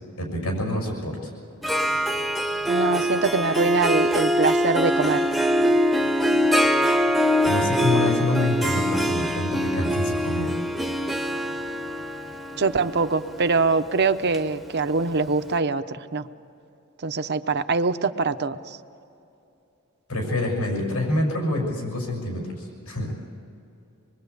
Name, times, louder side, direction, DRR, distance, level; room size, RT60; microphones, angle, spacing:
voice 1, 0.2-1.2 7.4-10.6 20.1-23.1, left 1 dB, 90° left, 1 dB, 6.5 m, -26 dB
Harp, 1.6-15.2, equal, ahead, 0.8 m, -23 dB
voice 2, 2.7-5.3 12.6-16.3 17.0-18.8, right 4 dB, 50° right, 10 dB, 0.8 m, -23 dB
25.0 x 22.0 x 8.3 m, 2.7 s
head